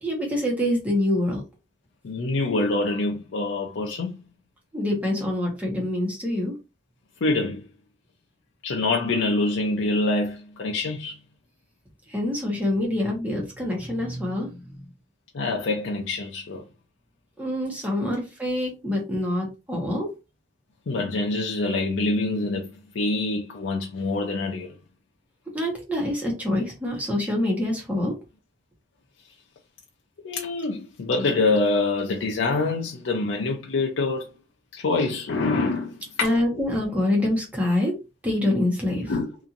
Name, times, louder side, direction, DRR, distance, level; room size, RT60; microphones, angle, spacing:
voice 1, 0.0-1.4 4.7-6.5 12.1-14.5 17.4-20.1 25.5-28.1 36.2-37.9 38.2-39.1, left 1 dB, 10° right, 0.9 m, -25 dB
voice 2, 2.0-4.1 7.2-7.6 8.6-11.2 15.3-16.6 18.0-18.2 20.9-24.7 30.2-34.3 34.7-36.6 39.1-39.3, left 3 dB, 75° left, 0.5 m, -25 dB
2.8 x 2.5 x 2.4 m
head